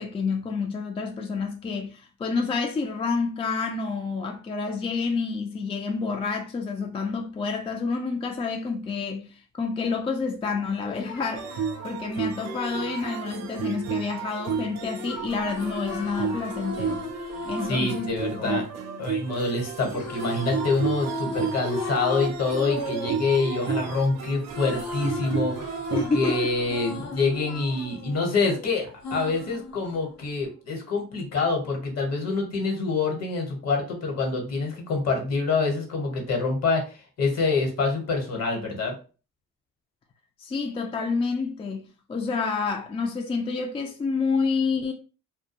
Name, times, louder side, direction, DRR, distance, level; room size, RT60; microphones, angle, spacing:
voice 1, 0.0-11.5 11.8-17.0 17.4-18.7 25.9-26.5 40.4-44.9, left 4 dB, 20° left, 0.3 m, -29 dB
Singing, 10.4-13.7 14.8-16.8 17.1-18.4 19.8-20.7 21.3-22.3 22.5-26.2 27.0-29.2, left 3 dB, 40° left, 0.7 m, -39 dB
sound 1, 11.4-26.1, right 7 dB, 60° right, 0.5 m, -33 dB
sound 2, 15.3-19.4 20.0-24.0 24.3-28.5 29.0-30.5, left 2 dB, 85° left, 0.9 m, -37 dB
voice 2, 17.7-18.6 19.0-38.9, left 3 dB, 55° left, 1.1 m, -26 dB
2.3 x 2.2 x 2.8 m
cardioid pair, 90°, 30 cm